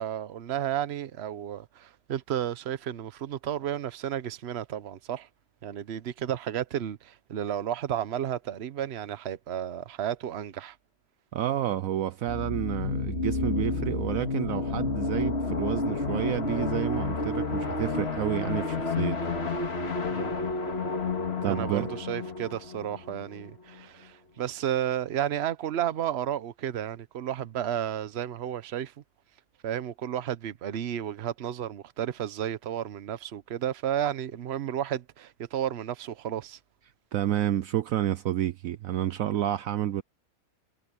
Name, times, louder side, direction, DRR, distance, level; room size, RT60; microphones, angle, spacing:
voice 1, 0.0-5.3 5.6-10.8 20.1-20.3 21.4-28.9 29.6-36.6, right 10 dB, 50° right, 1.0 m, -32 dB
voice 2, 11.3-19.7 21.4-22.0 37.1-40.0, right 12 dB, 70° right, 1.0 m, -30 dB
sound 1, 12.3-23.8, left 3 dB, 45° left, 2.1 m, -30 dB
omnidirectional pair, 1.6 m